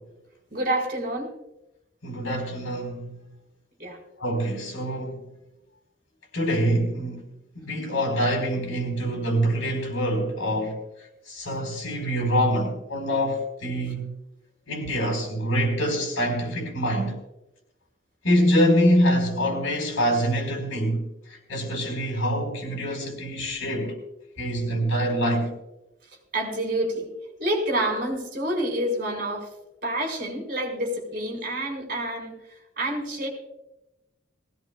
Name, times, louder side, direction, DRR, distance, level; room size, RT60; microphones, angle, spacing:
voice 1, 0.5-1.3 3.8-4.0 26.3-27.1 27.4-29.5 29.8-33.3, right 1 dB, 45° right, 4.3 m, -28 dB
voice 2, 2.0-3.2 4.2-5.2 6.3-7.2 7.6-10.8 11.3-14.1 14.7-17.2 18.2-24.0 24.4-25.5, equal, 85° left, 4.1 m, -25 dB
19.5 x 16.5 x 2.3 m
head